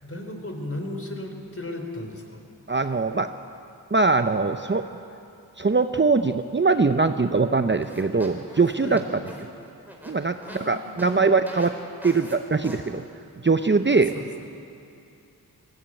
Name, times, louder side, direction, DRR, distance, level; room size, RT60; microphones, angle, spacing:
voice 1, 0.0-2.4 8.8-9.0 10.4-11.4 13.9-14.2, left 1 dB, 35° left, 3 dB, 4.0 m, -35 dB
voice 2, 2.7-3.3 3.9-4.8 5.6-9.2 10.0-11.7 12.0-13.0 13.4-14.1, right 4 dB, 30° right, 8 dB, 0.7 m, -22 dB
sound 1, 7.8-10.7 11.0-11.1 11.5-11.7 12.0-12.4 12.6-12.8, equal, 5° right, 4.2 m, -42 dB
20.5 x 16.0 x 9.0 m, 2.6 s
cardioid pair, 45°, 39 cm